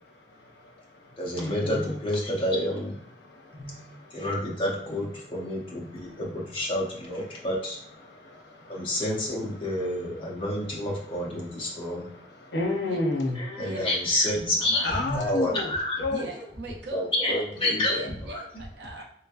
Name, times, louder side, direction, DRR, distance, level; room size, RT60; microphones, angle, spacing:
voice 1, 0.3-2.0 3.3-4.3 5.9-6.2 7.3-7.5 8.0-9.0 9.7-9.8 11.8-13.6 14.8-15.7 16.0-16.3 17.6-18.1, left 2 dB, 85° left, 0 dB, 0.8 m, -33 dB
voice 2, 1.2-3.0 3.5-7.8 8.7-12.1 13.4-16.0 16.9-18.0 18.3-18.4, left 1 dB, 30° left, -4 dB, 0.7 m, -29 dB
voice 3, 13.5-13.9 14.6-15.0 16.1-19.0, right 2 dB, 80° right, 1 dB, 0.7 m, -41 dB
3.3 x 3.1 x 2.4 m, 0.68 s
head